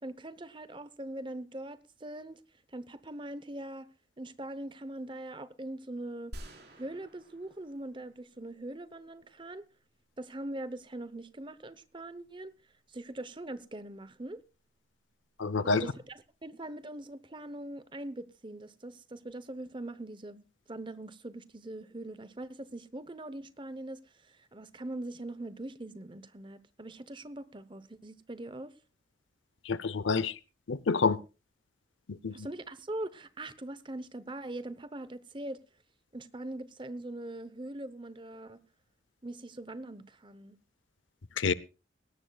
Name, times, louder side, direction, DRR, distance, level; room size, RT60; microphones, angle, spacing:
voice 1, 0.0-2.4 2.7-3.9 4.2-6.3 6.7-9.7 10.2-12.5 12.9-14.4 15.6-28.7 32.3-35.6 36.1-38.6 39.2-40.6, right 1 dB, 25° right, 0.9 m, -42 dB
sound 1, 6.3-8.6, right 1 dB, 60° right, 4.6 m, -49 dB
voice 2, 15.4-15.9 29.6-30.4 30.7-31.2 32.1-32.5 41.4-41.5, left 4 dB, 85° left, 0.7 m, -28 dB
19.5 x 17.0 x 2.4 m
head